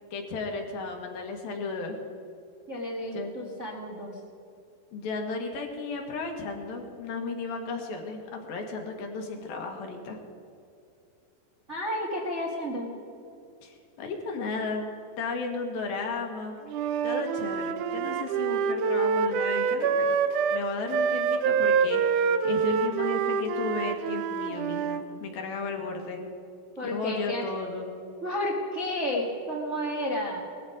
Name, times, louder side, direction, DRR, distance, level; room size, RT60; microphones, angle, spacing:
voice 1, 0.1-2.0 3.1-3.3 4.9-10.2 13.6-14.9 15.2-16.6 17.0-20.1 20.5-26.2 26.8-27.9, left 3 dB, 70° left, 2 dB, 3.3 m, -34 dB
voice 2, 2.7-4.2 11.7-12.9 26.8-27.5 28.2-30.4, left 1 dB, 30° right, -3 dB, 1.3 m, -31 dB
Wind instrument woodwind instrument, 16.7-25.0, right 6 dB, 80° right, 1.8 m, -26 dB
19.5 x 14.5 x 5.1 m, 2.6 s
omnidirectional pair, 4.5 m